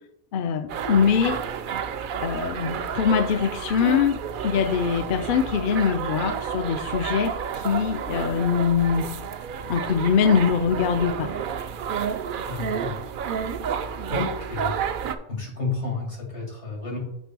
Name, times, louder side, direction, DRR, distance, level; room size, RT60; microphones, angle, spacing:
voice 1, 0.3-1.4 2.2-4.2 4.4-9.0 9.7-11.3, left 7 dB, 60° left, 9 dB, 0.6 m, -23 dB
sound 1, 0.7-15.1, right 7 dB, 60° right, 0.6 m, -30 dB
voice 2, 12.5-12.9 14.1-14.7 15.3-17.0, left 4 dB, 85° left, 0 dB, 2.5 m, -31 dB
7.2 x 3.6 x 6.0 m, 0.80 s
omnidirectional pair, 1.1 m